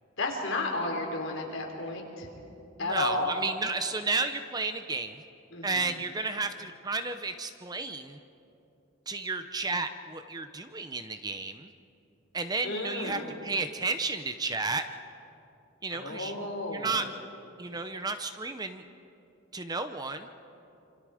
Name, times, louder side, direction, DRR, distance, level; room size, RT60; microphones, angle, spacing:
voice 1, 0.2-2.3 2.8-3.3 5.5-5.8 12.6-13.2 15.9-16.9, left 2 dB, 65° left, 0 dB, 4.0 m, -32 dB
voice 2, 2.8-5.2 5.6-8.2 9.1-11.7 12.3-14.9 15.8-16.3 16.7-17.0 17.6-18.8 19.5-20.3, right 3 dB, 20° right, 9 dB, 0.7 m, -32 dB
27.0 x 26.5 x 5.0 m, 2.8 s
head